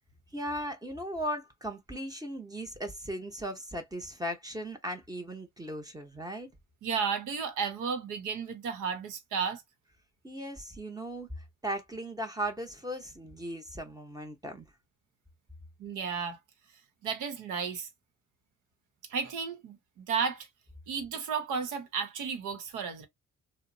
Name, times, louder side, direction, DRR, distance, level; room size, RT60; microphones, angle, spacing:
voice 1, 0.3-6.5 10.2-14.7, right 1 dB, 10° right, 0.8 m, -37 dB
voice 2, 6.8-9.6 15.8-16.4 17.0-17.9 19.1-20.5 20.9-23.1, right 6 dB, 90° right, 0.9 m, -33 dB
2.8 x 2.1 x 2.5 m
cardioid pair, 90°, 30 cm